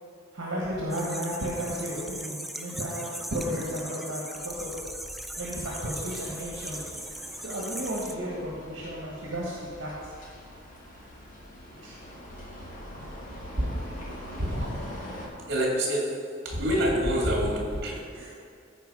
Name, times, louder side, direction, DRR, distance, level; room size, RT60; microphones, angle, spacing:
voice 1, 0.3-4.9 5.4-6.9 7.4-10.0 11.8-12.0 12.5-12.7 13.0-13.1 18.1-18.3, equal, 70° right, -4 dB, 1.4 m, -34 dB
sound 1, 0.9-8.1, right 1 dB, ahead, 0.3 m, -39 dB
sound 2, 5.4-15.3, equal, 40° left, 1.7 m, -44 dB
voice 2, 13.3-13.7 14.4-14.8 15.5-18.3, equal, 55° right, -2 dB, 2.1 m, -27 dB
14.0 x 4.6 x 4.8 m, 2.4 s
head